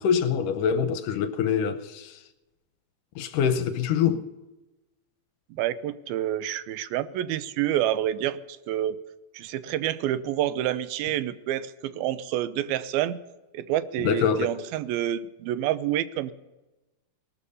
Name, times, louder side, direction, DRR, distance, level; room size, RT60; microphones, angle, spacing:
voice 1, 0.0-2.2 3.2-4.2 14.0-14.5, left 7 dB, 75° left, 2.1 m, -25 dB
voice 2, 5.5-8.4 8.7-9.0 9.3-13.2 13.5-16.3, right 12 dB, 85° right, 2.6 m, -28 dB
19.0 x 13.0 x 5.5 m
omnidirectional pair, 4.2 m